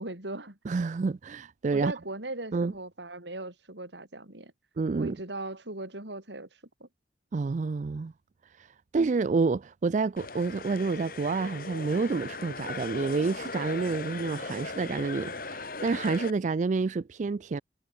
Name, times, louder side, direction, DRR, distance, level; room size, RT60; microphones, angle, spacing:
voice 1, 0.0-0.6 1.7-4.5 4.9-6.5 6.8-6.9, right 2 dB, 70° right, 4.4 m, -38 dB
voice 2, 0.7-1.9 2.5-2.7 4.8-5.2 7.3-8.1 8.4-17.6, right 4 dB, 40° right, 0.4 m, -29 dB
sound 1, 10.2-16.3, left 3 dB, 50° left, 5.0 m, -38 dB
head